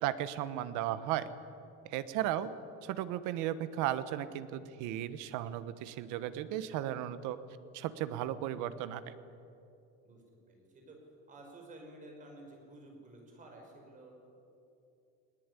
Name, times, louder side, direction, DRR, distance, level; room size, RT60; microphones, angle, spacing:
voice 1, 0.0-1.3 1.8-2.5 2.8-7.4 7.7-9.0, right 12 dB, 70° right, 13 dB, 1.3 m, -35 dB
voice 2, 10.0-11.0 11.3-14.1, right 2 dB, 25° right, 2 dB, 5.4 m, -53 dB
19.5 x 19.5 x 10.0 m, 2.7 s
cardioid pair, 170°, 31 cm